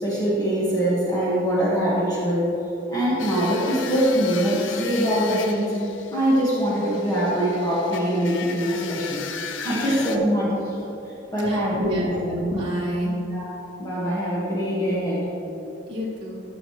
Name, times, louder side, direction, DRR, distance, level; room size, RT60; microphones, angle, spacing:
voice 1, 0.0-2.5 2.9-5.7 6.1-10.8 11.3-12.2 13.3-13.5 13.8-15.2, equal, 20° left, -8 dB, 1.8 m, -23 dB
sound 1, 3.2-10.2, left 7 dB, 70° left, 0.6 m, -36 dB
voice 2, 9.8-10.2 11.4-13.1 15.9-16.4, equal, 25° right, -6 dB, 1.6 m, -28 dB
15.0 x 6.3 x 3.3 m, 3.0 s
head